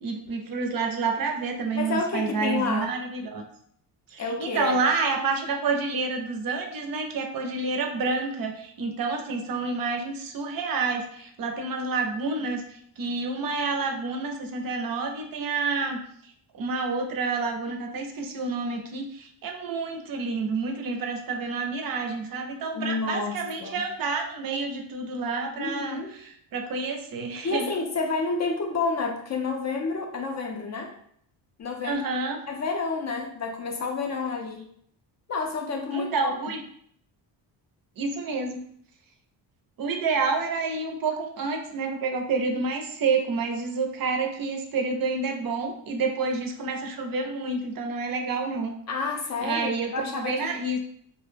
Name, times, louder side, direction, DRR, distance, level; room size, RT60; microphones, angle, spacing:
voice 1, 0.0-3.4 4.1-16.0 16.5-26.0 26.3-27.7 31.8-32.4 35.9-36.6 38.0-38.7 39.8-48.7 49.4-50.8, right 4 dB, 50° right, 4 dB, 0.5 m, -29 dB
voice 2, 1.7-2.9 4.2-4.7 22.7-23.8 25.6-26.1 27.4-30.9 31.6-32.0 32.5-34.7 35.3-36.3 48.9-50.6, left 4 dB, 40° left, 3 dB, 0.4 m, -29 dB
2.3 x 2.0 x 3.1 m, 0.66 s
cardioid pair, 95°, 46 cm